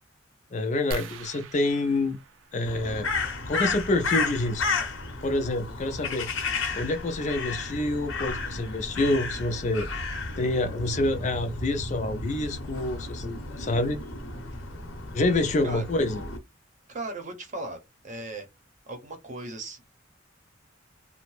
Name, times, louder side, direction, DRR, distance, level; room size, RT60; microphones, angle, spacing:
voice 1, 0.5-2.2 2.5-3.1 3.5-4.6 5.2-6.3 6.7-9.9 10.4-14.0 15.1-16.2, left 2 dB, 40° left, 0.4 m, -27 dB
sound 1, 0.9-3.3 4.9-5.1 5.6-5.7 6.0-6.2, right 2 dB, 85° right, 0.5 m, -41 dB
Crow, 2.7-16.4, left 4 dB, 90° left, 0.7 m, -33 dB
voice 2, 16.9-18.5 18.9-19.8, right 2 dB, 40° right, 0.7 m, -37 dB
2.7 x 2.0 x 3.1 m
head